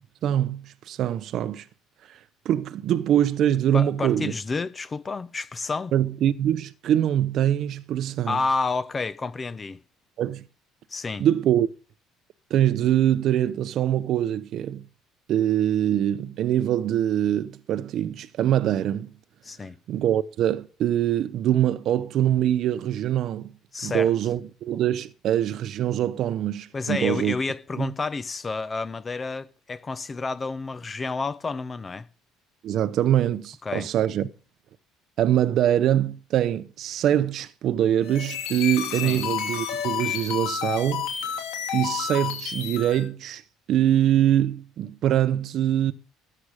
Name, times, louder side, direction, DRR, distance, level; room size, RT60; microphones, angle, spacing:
voice 1, 0.2-1.7 2.1-2.2 2.4-4.3 5.9-8.4 10.2-10.4 11.2-11.7 12.5-14.8 15.3-19.1 19.9-23.5 23.8-27.3 27.8-27.9 32.6-34.3 35.2-41.3 41.7-43.4 43.7-45.9, right 11 dB, 55° right, 0.7 m, -23 dB
voice 2, 3.7-5.9 8.3-9.8 10.9-11.3 19.4-19.8 23.7-24.1 26.7-32.1 33.6-33.9 39.0-39.2, left 4 dB, 25° left, 0.7 m, -30 dB
sound 1, 38.0-43.1, left 9 dB, 90° left, 3.0 m, -30 dB
13.5 x 8.8 x 4.9 m
cardioid pair, 115°, 0 cm